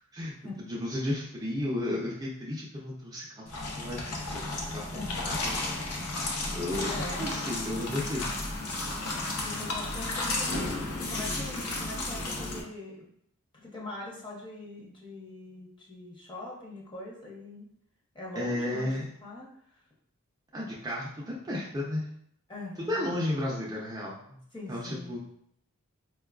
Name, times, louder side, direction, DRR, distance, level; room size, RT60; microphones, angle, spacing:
voice 1, 0.7-5.8 6.5-8.6 11.4-11.5 18.3-19.0 20.5-22.1 22.9-24.4 24.7-25.2, left 1 dB, 15° right, -5 dB, 0.4 m, -34 dB
sound 1, 3.5-12.6, left 2 dB, 85° left, 0.7 m, -33 dB
voice 2, 4.9-5.4 6.9-7.3 9.4-13.1 13.5-17.7 18.1-18.9 19.2-19.8 22.5-23.0 24.5-25.2, left 2 dB, 20° left, -4 dB, 0.8 m, -42 dB
4.3 x 2.3 x 2.3 m, 0.70 s
head